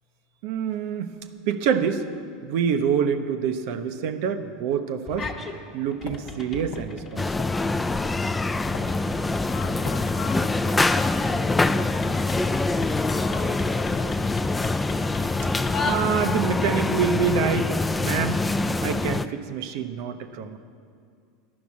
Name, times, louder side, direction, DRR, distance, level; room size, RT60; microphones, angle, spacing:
voice 1, 0.4-1.2 1.5-2.1 2.4-5.3 5.7-7.3 15.8-18.5 18.8-20.6, right 7 dB, 65° right, 8 dB, 0.6 m, -26 dB
sound 1, 5.1-5.6 5.9-16.6, left 2 dB, 35° left, 1.2 m, -36 dB
sound 2, 6.1-9.3 9.9-10.5 11.0-11.2, left 4 dB, 70° left, 1.1 m, -40 dB
sound 3, 7.2-19.3, left 2 dB, 15° left, 0.3 m, -25 dB
voice 2, 9.5-12.0 12.3-14.2, left 7 dB, 55° left, 6 dB, 1.0 m, -41 dB
10.5 x 6.0 x 8.4 m, 2.3 s
hypercardioid pair, 85°, 0 cm